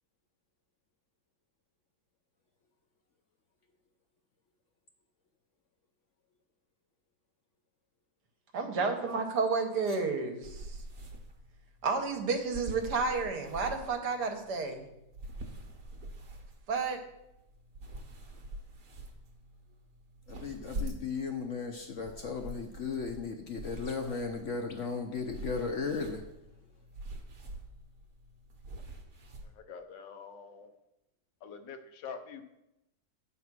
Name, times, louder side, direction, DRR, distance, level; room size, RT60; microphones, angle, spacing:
voice 1, 8.5-10.8 11.8-14.9 16.7-17.0, right 4 dB, 70° right, 5 dB, 1.5 m, -31 dB
sound 1, 10.4-29.5, right 1 dB, 50° right, 1.4 m, -45 dB
voice 2, 20.3-26.2, left 4 dB, 60° left, 4 dB, 0.8 m, -36 dB
voice 3, 29.4-30.8 31.4-32.4, left 6 dB, 85° left, 7 dB, 1.5 m, -45 dB
9.3 x 4.1 x 6.0 m, 0.88 s
omnidirectional pair, 1.9 m